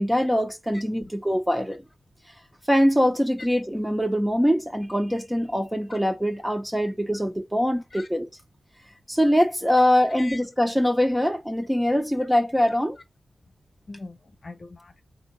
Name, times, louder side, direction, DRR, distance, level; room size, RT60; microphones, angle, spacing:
voice 1, 0.0-1.8 2.7-8.3 9.1-13.0, equal, 5° right, 0.5 m, -23 dB
voice 2, 13.9-15.0, left 3 dB, 40° left, 0.9 m, -41 dB
3.7 x 2.7 x 4.3 m
wide cardioid pair, 145°, 0 cm